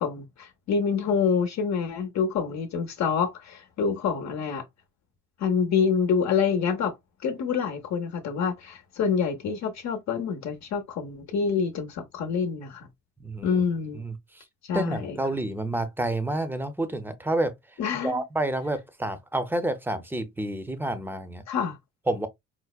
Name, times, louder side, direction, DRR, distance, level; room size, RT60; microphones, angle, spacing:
voice 1, 0.0-4.6 5.4-6.9 7.2-12.9 13.4-14.0 14.7-15.2 17.8-18.2 21.5-21.8, left 6 dB, 65° left, 0.8 m, -27 dB
voice 2, 13.2-13.6 14.0-14.4 14.7-17.5 18.0-21.4 22.1-22.3, right 1 dB, 5° right, 0.6 m, -29 dB
4.6 x 2.1 x 2.3 m
cardioid pair, 90°, 30 cm